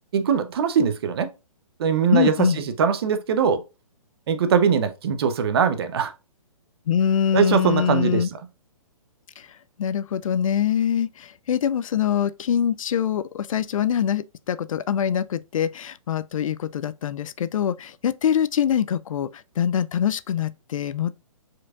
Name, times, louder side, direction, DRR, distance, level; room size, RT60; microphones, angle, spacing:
voice 1, 0.1-1.3 1.8-3.6 4.3-6.1 7.3-8.4, right 6 dB, 45° right, 0.7 m, -21 dB
voice 2, 2.1-2.6 6.9-8.3 9.4-9.5 9.8-21.2, left 8 dB, 65° left, 0.4 m, -24 dB
4.8 x 4.5 x 2.4 m
hypercardioid pair, 160°, 18 cm